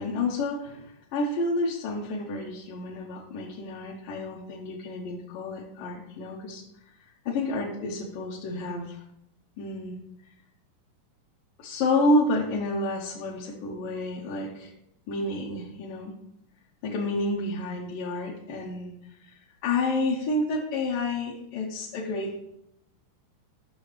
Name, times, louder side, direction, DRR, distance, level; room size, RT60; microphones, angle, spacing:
voice 1, 0.0-6.6 7.3-9.0 9.6-10.0 11.6-14.7 15.1-16.1 16.8-18.9 19.2-19.3 19.6-22.4, left 2 dB, 70° left, -4 dB, 2.3 m, -29 dB
10.0 x 6.2 x 3.2 m, 0.77 s
omnidirectional pair, 4.7 m